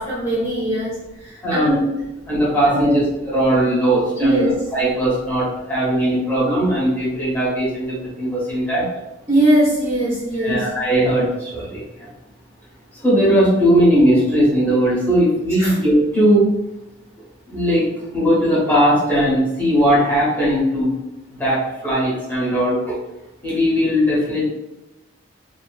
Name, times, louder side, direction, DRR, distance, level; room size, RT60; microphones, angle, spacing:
voice 1, 0.0-1.9 2.7-3.0 4.2-4.5 9.3-10.6 15.6-15.7, right 1 dB, 15° right, -10 dB, 0.8 m, -20 dB
voice 2, 2.3-3.0 3.3-4.4 4.7-8.8 10.4-12.1 12.9-16.5 17.5-17.8 18.1-20.9 21.4-22.9 23.4-24.5, equal, 10° left, -9 dB, 0.9 m, -18 dB
2.7 x 2.5 x 2.3 m, 0.97 s
head